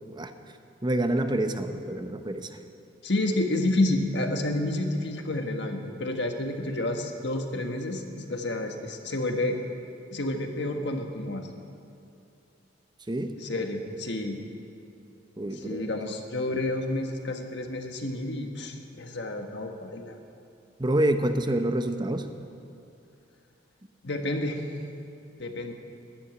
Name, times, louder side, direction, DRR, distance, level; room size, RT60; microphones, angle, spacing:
voice 1, 0.8-2.5 13.1-13.7 15.4-15.8 20.8-22.3, right 1 dB, 25° right, 8 dB, 0.8 m, -27 dB
voice 2, 3.0-9.6 10.1-11.5 13.4-14.4 15.5-20.2 24.0-24.6 25.4-25.7, left 1 dB, 65° left, 4 dB, 1.5 m, -30 dB
12.5 x 11.0 x 9.8 m, 2.6 s
head